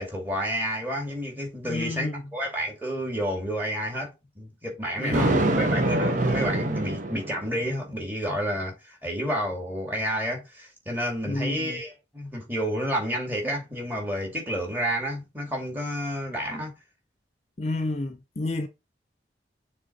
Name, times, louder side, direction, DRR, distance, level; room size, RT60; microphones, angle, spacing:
voice 1, 0.0-4.1 4.4-16.7, equal, 10° right, 2.3 m, -30 dB
voice 2, 1.6-2.2 5.0-5.5 11.3-11.8 17.6-18.7, left 2 dB, 40° left, 0.6 m, -30 dB
Thunder, 5.1-7.6, right 1 dB, 45° right, 1.0 m, -25 dB
6.6 x 3.6 x 4.4 m
head